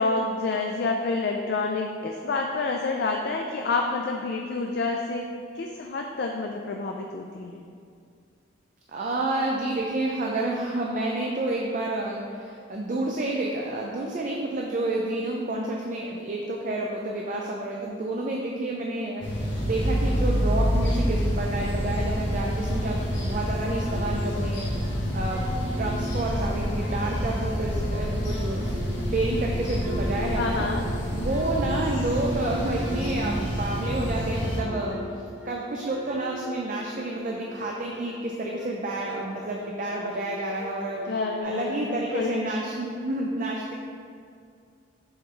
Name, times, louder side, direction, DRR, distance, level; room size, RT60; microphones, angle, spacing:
voice 1, 0.0-5.3 5.5-7.7 30.4-30.8 41.1-42.5, left 3 dB, 55° left, 2 dB, 0.4 m, -28 dB
voice 2, 8.9-30.6 31.1-35.0 35.5-41.0 41.4-43.7, right 2 dB, 40° right, -1 dB, 0.5 m, -30 dB
sound 1, 19.2-34.6, equal, 75° left, 1.4 m, -27 dB
sound 2, 23.1-25.0 25.3-28.0 28.3-34.1 34.5-40.3 40.5-41.4, right 1 dB, 60° right, 1.2 m, -42 dB
6.3 x 3.9 x 4.3 m, 2.4 s
head